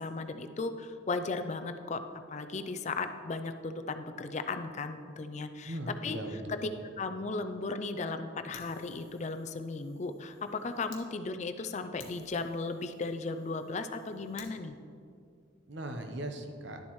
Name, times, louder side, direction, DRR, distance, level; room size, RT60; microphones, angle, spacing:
voice 1, 0.0-2.0 2.3-5.8 6.0-6.7 7.0-14.8, left 3 dB, 35° left, 8 dB, 0.4 m, -36 dB
voice 2, 5.6-6.7 15.7-16.8, right 1 dB, 60° right, 5 dB, 0.8 m, -38 dB
Fire, 8.5-11.0 11.5-11.6 12.0-14.5, left 5 dB, 80° left, 1.2 m, -55 dB
11.5 x 7.2 x 3.1 m, 2.3 s
head